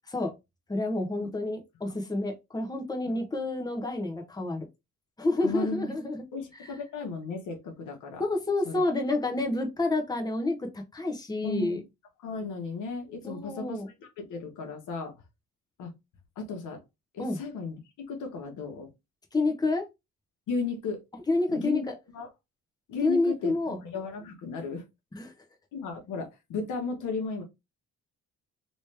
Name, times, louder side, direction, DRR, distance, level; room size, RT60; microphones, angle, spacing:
voice 1, 0.7-4.7 5.2-6.2 6.6-6.7 8.2-11.8 13.2-13.9 17.2-17.4 19.3-19.8 21.3-21.9 23.0-23.8 25.1-25.3, left 2 dB, 15° left, 1.0 m, -29 dB
voice 2, 5.4-5.9 6.3-8.2 8.6-8.8 9.4-9.5 11.4-11.8 12.2-15.2 15.8-15.9 16.4-16.8 17.1-17.8 18.1-18.9 20.5-21.0 21.5-21.8 22.1-22.3 22.9-24.8 25.7-27.4, left 4 dB, 80° left, 1.2 m, -35 dB
3.1 x 3.0 x 3.3 m
cardioid pair, 90°, 30 cm